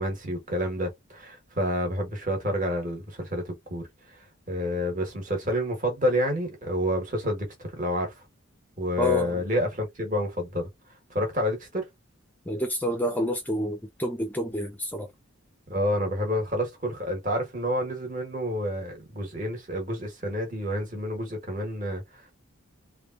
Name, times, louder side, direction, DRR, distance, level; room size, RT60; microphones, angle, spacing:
voice 1, 0.0-8.2 8.8-10.7 11.1-11.9 15.7-22.4, equal, 40° right, 1.2 m, -29 dB
voice 2, 9.0-9.4 12.5-15.1, left 1 dB, 10° left, 0.3 m, -28 dB
3.3 x 2.3 x 2.4 m
head